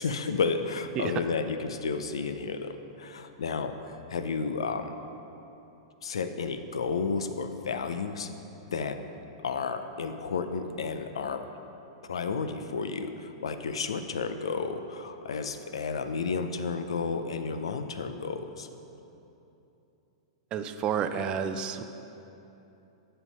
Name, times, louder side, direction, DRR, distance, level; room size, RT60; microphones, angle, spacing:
voice 1, 0.0-4.9 6.0-8.3 8.7-9.0 9.4-11.5 12.1-18.7, left 5 dB, 85° left, 8 dB, 0.5 m, -32 dB
voice 2, 20.5-21.8, right 7 dB, 30° right, 9 dB, 0.5 m, -30 dB
8.2 x 5.5 x 5.4 m, 2.9 s
hypercardioid pair, 120°, 3 cm